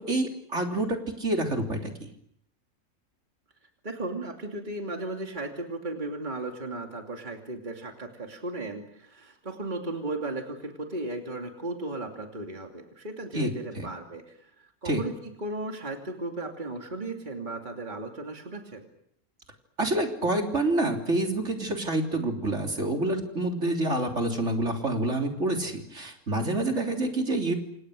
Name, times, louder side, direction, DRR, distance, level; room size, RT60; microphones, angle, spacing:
voice 1, 0.1-2.1 13.3-13.5 13.8-13.9 14.8-15.0 19.8-27.5, right 2 dB, 55° right, 2 dB, 3.8 m, -27 dB
voice 2, 3.8-18.8, right 2 dB, 35° right, 2 dB, 2.8 m, -36 dB
28.5 x 28.0 x 6.5 m, 0.73 s
omnidirectional pair, 1.5 m